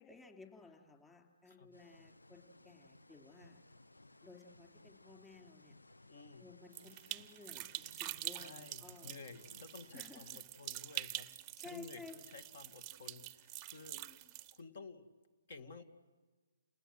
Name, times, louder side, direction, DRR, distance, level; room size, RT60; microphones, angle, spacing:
voice 1, 0.0-3.6 4.2-5.7 6.4-9.1 9.9-10.4 11.6-12.2 13.9-14.3, left 4 dB, 10° left, 2 dB, 4.0 m, -56 dB
sound 1, 1.7-10.4, left 2 dB, 90° left, 0.8 m, -62 dB
voice 2, 6.0-6.5 8.3-11.3 11.6-14.1 14.5-15.1 15.5-15.8, left 4 dB, 50° left, 9 dB, 2.3 m, -53 dB
sound 2, 6.7-14.6, right 14 dB, 25° right, 0.7 m, -46 dB
30.0 x 20.5 x 7.9 m, 1.3 s
figure-of-eight pair, 135°, 0 cm